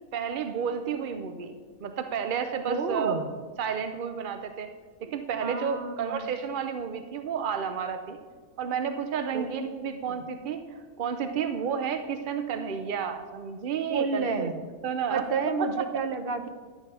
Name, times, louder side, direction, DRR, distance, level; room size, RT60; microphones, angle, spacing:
voice 1, 0.1-3.2 3.6-4.7 5.0-8.2 8.6-10.6 11.0-14.5 14.8-15.2, right 7 dB, 70° right, 8 dB, 0.4 m, -31 dB
voice 2, 2.7-3.3 5.4-6.3 9.3-9.5 9.9-10.2 13.9-14.6 15.1-16.5, right 4 dB, 50° right, 8 dB, 0.8 m, -30 dB
11.0 x 7.2 x 5.5 m, 1.5 s
omnidirectional pair, 1.6 m